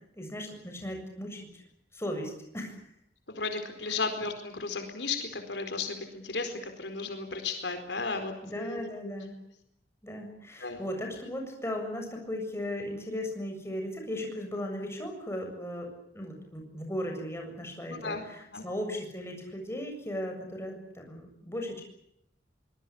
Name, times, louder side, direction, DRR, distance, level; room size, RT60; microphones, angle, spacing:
voice 1, 0.2-1.6 1.9-2.8 3.8-4.0 8.4-9.3 10.0-21.8, left 1 dB, 15° left, 3 dB, 7.4 m, -37 dB
voice 2, 3.3-9.1 10.6-10.8 11.3-11.4 17.9-18.2 18.5-18.6, left 4 dB, 70° left, 6 dB, 4.5 m, -35 dB
25.0 x 21.0 x 8.8 m, 0.76 s
head